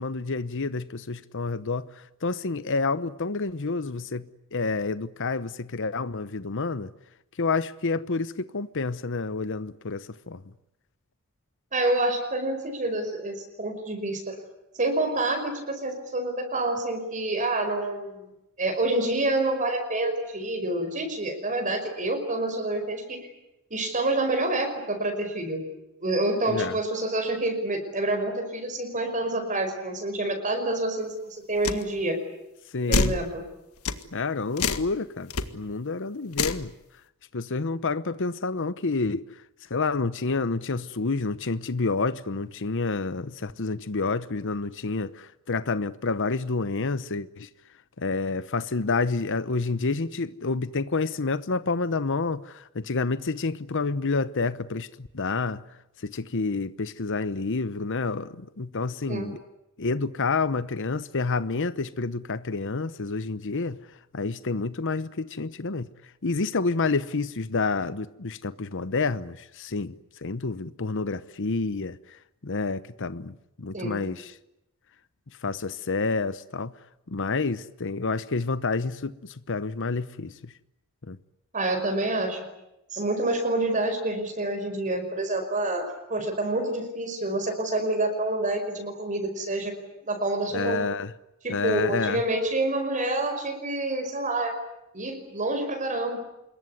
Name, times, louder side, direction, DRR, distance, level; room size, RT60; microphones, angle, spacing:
voice 1, 0.0-6.9 7.4-10.4 26.5-26.8 32.7-33.1 34.1-36.7 37.3-39.2 39.7-47.5 48.0-55.6 56.0-59.4 59.8-63.8 64.1-65.9 66.2-74.3 75.4-76.7 77.1-80.5 81.1-81.2 90.5-91.1 91.5-92.2, left 3 dB, 60° left, 0.9 m, -29 dB
voice 2, 11.7-14.4 14.8-18.3 18.6-23.2 23.7-25.7 26.0-32.2 32.9-33.4 59.1-59.3 73.7-74.0 81.5-82.5 82.9-89.7 90.0-90.8 91.4-94.6 94.9-96.2, right 2 dB, 35° right, 5.4 m, -27 dB
sound 1, 31.6-31.8 32.9-33.2 33.9-34.0 34.6-34.9 35.3-35.4 36.3-36.6, left 4 dB, 80° left, 1.8 m, -25 dB
26.5 x 22.0 x 9.7 m
head